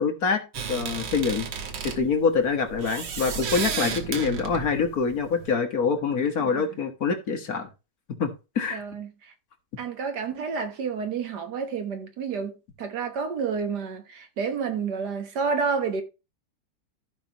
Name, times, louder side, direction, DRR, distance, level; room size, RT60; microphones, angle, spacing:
voice 1, 0.0-1.5 1.8-7.7 8.2-8.8, left 5 dB, 55° left, 1.9 m, -25 dB
sound 1, 0.5-5.5, right 6 dB, 85° right, 1.9 m, -33 dB
voice 2, 8.7-9.3 9.8-16.0, right 5 dB, 65° right, 1.8 m, -30 dB
14.5 x 5.3 x 2.9 m
omnidirectional pair, 1.9 m